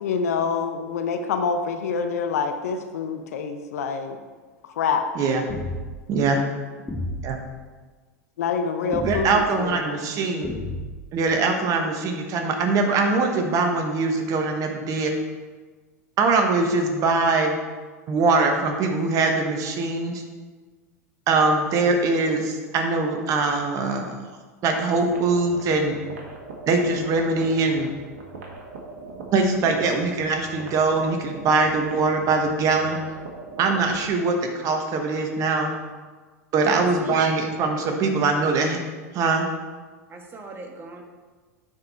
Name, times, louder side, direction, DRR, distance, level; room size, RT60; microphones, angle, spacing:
voice 1, 0.0-4.2 4.8-5.0 8.4-9.9, left 5 dB, 70° left, 6 dB, 0.8 m, -26 dB
voice 2, 5.1-5.4 6.1-6.4 7.2-7.4 9.0-10.5 11.1-15.1 16.2-17.6 18.1-20.2 21.3-24.2 24.6-26.0 26.7-27.9 29.3-33.0 33.6-35.7 36.5-38.8 39.1-39.5, right 3 dB, 40° right, 4 dB, 1.2 m, -22 dB
sound 1, 5.5-6.0 6.9-7.4 8.9-9.5 10.4-11.1, left 1 dB, 15° left, 1.1 m, -31 dB
sound 2, 25.1-34.1, right 3 dB, 65° right, 1.7 m, -41 dB
voice 3, 36.6-37.2 37.9-38.0 40.1-41.0, right 3 dB, 25° right, 3 dB, 1.3 m, -40 dB
9.3 x 4.7 x 4.3 m, 1.4 s
hypercardioid pair, 90°, 9 cm